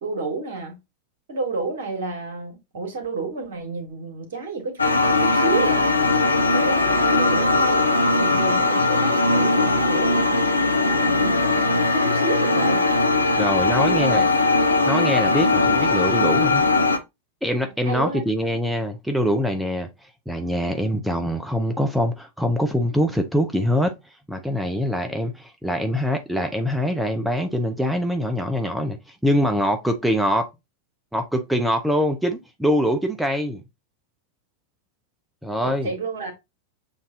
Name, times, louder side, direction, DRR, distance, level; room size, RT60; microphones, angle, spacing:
voice 1, 0.0-0.8 1.3-6.0 6.4-7.9 8.2-11.6 11.9-12.9 13.6-14.2 17.8-18.2 35.6-36.3, right 3 dB, 60° right, 1.7 m, -30 dB
sound 1, 4.8-17.0, left 3 dB, 80° left, 0.7 m, -19 dB
voice 2, 13.4-14.2 14.9-16.7 17.4-23.9 24.3-30.5 31.1-33.6 35.4-35.9, equal, 5° right, 0.6 m, -24 dB
7.1 x 2.6 x 2.7 m
figure-of-eight pair, 90°, 0 cm